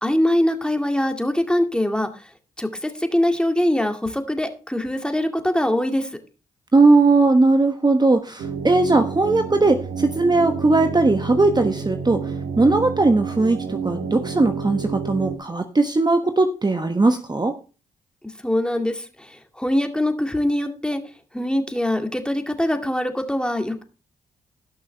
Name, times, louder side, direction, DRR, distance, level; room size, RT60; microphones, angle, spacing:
voice 1, 0.0-2.1 2.6-6.1 18.4-21.0 21.3-23.8, left 1 dB, 5° left, 5 dB, 2.1 m, -23 dB
voice 2, 6.7-12.2 12.6-17.5, right 3 dB, 25° right, 7 dB, 1.2 m, -18 dB
sound 1, 8.4-15.4, right 5 dB, 75° right, 1.5 m, -29 dB
17.5 x 6.2 x 3.4 m, 0.34 s
hypercardioid pair, 40°, 17 cm